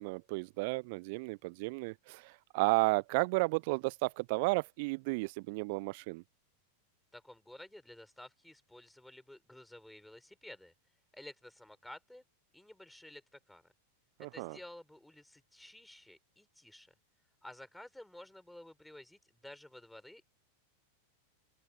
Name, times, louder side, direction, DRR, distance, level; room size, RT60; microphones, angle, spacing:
voice 1, 0.0-6.2 14.2-14.6, right 27 dB, 50° right, 0.8 m, -33 dB
voice 2, 7.1-10.7 11.1-12.2 12.5-13.7 14.3-16.9 17.4-20.2, left 1 dB, 5° left, 7.5 m, -53 dB
open air
figure-of-eight pair, 90°, 0 cm